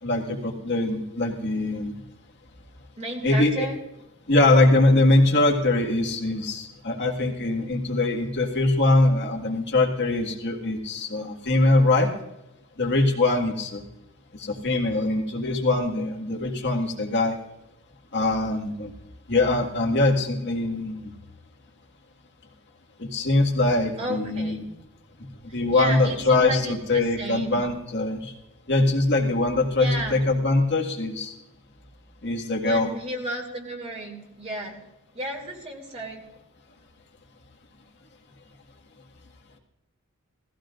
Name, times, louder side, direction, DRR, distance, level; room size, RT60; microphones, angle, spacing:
voice 1, 0.0-1.9 3.2-3.7 4.3-12.1 12.8-13.9 14.3-17.4 18.1-18.9 19.3-21.1 23.0-24.6 25.5-28.3 28.7-31.3 32.2-32.9, left 2 dB, 55° left, 0 dB, 1.9 m, -22 dB
voice 2, 3.0-3.8 24.0-24.6 25.5-27.6 29.8-30.2 32.6-34.8 35.1-36.2, right 1 dB, 30° right, 1 dB, 2.6 m, -33 dB
19.0 x 15.5 x 2.5 m, 0.90 s
head